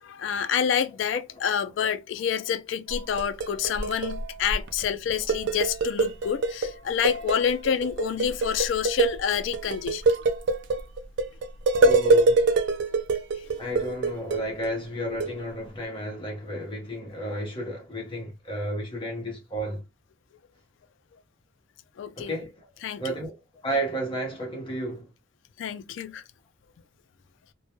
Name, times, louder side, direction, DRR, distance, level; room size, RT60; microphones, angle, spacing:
voice 1, 0.0-10.0 13.4-13.6 22.0-22.3 22.8-23.0 25.6-26.2, left 8 dB, 75° left, 0.3 m, -28 dB
sound 1, 2.9-4.8 5.1-6.7 7.0-14.7 15.2-15.4, right 2 dB, 65° right, 0.3 m, -24 dB
voice 2, 11.8-12.4 13.6-19.8 22.1-22.7 23.0-23.3 23.6-25.1, equal, 30° left, 0.7 m, -32 dB
2.1 x 2.1 x 2.9 m
head